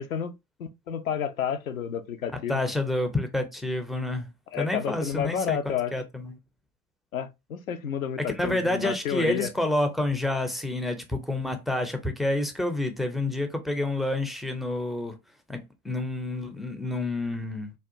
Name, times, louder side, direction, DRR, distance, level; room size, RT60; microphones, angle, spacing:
voice 1, 0.0-2.6 4.5-5.9 7.1-9.5, left 8 dB, 80° left, 0.5 m, -30 dB
voice 2, 2.5-4.3 4.6-6.3 8.4-15.2 15.5-17.7, left 2 dB, ahead, 0.4 m, -29 dB
3.4 x 2.3 x 2.6 m
figure-of-eight pair, 65°, 41 cm